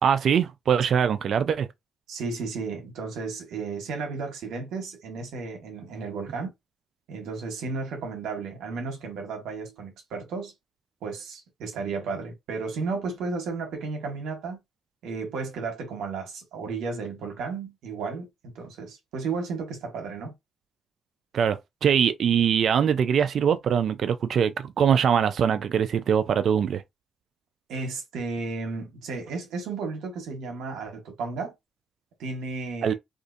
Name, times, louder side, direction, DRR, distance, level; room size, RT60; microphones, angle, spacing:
voice 1, 0.0-1.7 21.3-26.8 32.8-32.9, right 8 dB, 60° right, 0.4 m, -22 dB
voice 2, 2.1-6.5 7.1-10.5 11.0-14.6 15.0-20.3 27.7-31.5 32.2-32.9, right 4 dB, 85° right, 1.1 m, -33 dB
3.6 x 2.5 x 2.6 m
cardioid pair, 90°, 0 cm